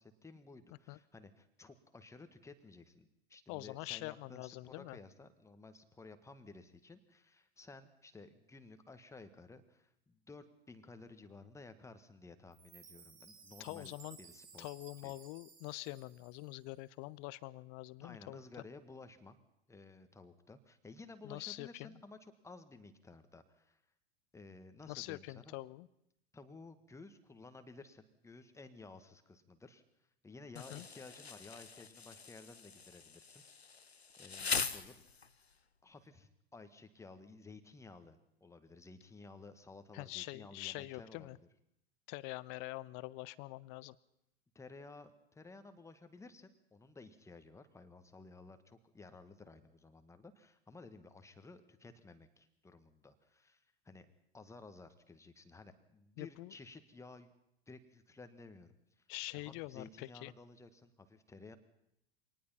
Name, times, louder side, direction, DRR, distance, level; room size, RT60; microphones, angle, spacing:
voice 1, 0.0-14.7 15.0-15.1 18.0-19.4 19.7-23.8 24.3-25.5 26.3-29.8 30.2-33.4 34.2-34.9 35.8-41.5 44.6-54.1 54.3-57.3 57.7-59.0 59.3-61.6, left 3 dB, 10° left, 9 dB, 1.7 m, -55 dB
voice 2, 3.5-5.0 13.6-14.2 14.6-18.4 21.2-21.9 24.9-25.9 30.7-30.9 39.9-41.4 42.1-44.0 56.2-56.5 59.1-60.3, left 21 dB, 40° left, 19 dB, 0.8 m, -45 dB
Chime, 12.5-16.7, right 6 dB, 40° right, 3.7 m, -58 dB
Insect, 30.6-35.5, left 5 dB, 90° left, 0.9 m, -42 dB
24.5 x 19.0 x 5.8 m, 0.80 s
figure-of-eight pair, 90°, 31 cm